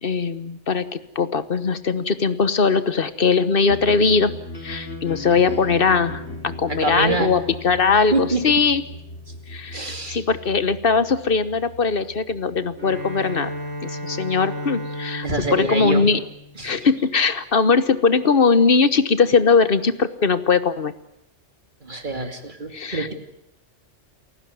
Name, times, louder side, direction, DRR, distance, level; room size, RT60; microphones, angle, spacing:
voice 1, 0.0-4.3 4.6-8.8 9.5-13.5 13.8-15.3 15.5-16.2 16.6-20.9 22.7-23.1, left 5 dB, 50° left, 13 dB, 1.3 m, -20 dB
sound 1, 3.6-13.7, left 2 dB, 75° left, 4.1 m, -37 dB
voice 2, 6.7-7.3 8.1-8.6 9.7-10.2 15.2-16.1 16.6-16.9 21.8-23.1, right 3 dB, 40° right, 6 dB, 2.9 m, -25 dB
Bowed string instrument, 12.7-17.0, equal, 60° right, 6.0 m, -34 dB
28.5 x 15.5 x 9.4 m, 0.78 s
omnidirectional pair, 1.2 m